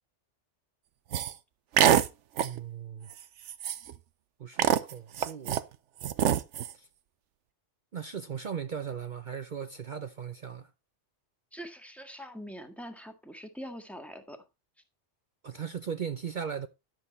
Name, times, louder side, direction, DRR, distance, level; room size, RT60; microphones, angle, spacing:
sound 1, 1.1-1.3 1.8-2.1 2.4-2.6 3.1-3.2 3.5-4.0 4.6-5.6 6.0-6.7, right 10 dB, 80° right, 1.1 m, -24 dB
voice 1, 2.4-3.1 4.4-5.7 6.7-6.9 7.9-10.7 15.4-16.7, right 7 dB, 50° right, 0.8 m, -38 dB
voice 2, 11.5-14.4, equal, ahead, 1.8 m, -43 dB
12.0 x 7.7 x 4.0 m
omnidirectional pair, 1.2 m